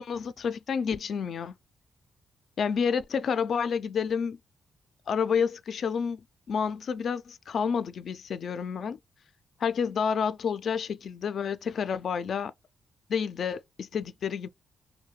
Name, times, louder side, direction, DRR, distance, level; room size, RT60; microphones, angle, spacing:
voice 1, 0.0-1.5 2.6-4.4 5.1-6.2 6.5-9.0 9.6-12.5 13.1-14.5, left 6 dB, 65° left, 0.3 m, -29 dB
2.4 x 2.2 x 3.0 m
supercardioid pair, 60°, 0 cm